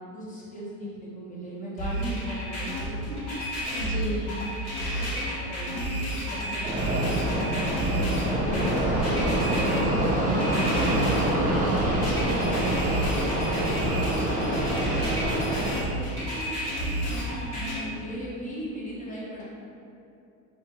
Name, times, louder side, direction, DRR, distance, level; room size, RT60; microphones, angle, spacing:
voice 1, 0.1-3.9 4.9-11.8 12.1-12.9 13.1-13.8 14.1-15.6 15.9-19.4, equal, 20° left, -7 dB, 1.0 m, -38 dB
sound 1, 1.8-17.8, equal, 50° left, 1.4 m, -31 dB
voice 2, 3.7-4.4 11.8-12.6, left 2 dB, 65° left, -1 dB, 0.7 m, -35 dB
Fixed-wing aircraft airplane, 6.6-15.7, right 1 dB, 25° right, 0.8 m, -26 dB
3.1 x 2.5 x 3.2 m, 2.7 s
supercardioid pair, 100°, 34 cm